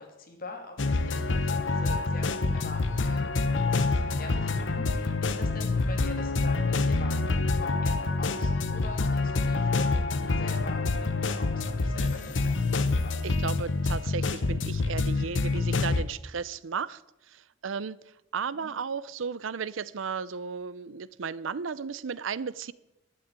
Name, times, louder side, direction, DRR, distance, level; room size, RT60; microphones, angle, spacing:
voice 1, 0.0-12.6 13.0-13.2 18.5-18.7, left 2 dB, 50° left, 2 dB, 2.7 m, -44 dB
sound 1, 0.8-16.0, left 3 dB, 70° left, 0.9 m, -27 dB
voice 2, 13.2-17.0 17.3-18.0 18.3-22.7, right 5 dB, 85° right, 19 dB, 0.6 m, -34 dB
12.0 x 8.8 x 8.9 m, 0.92 s
head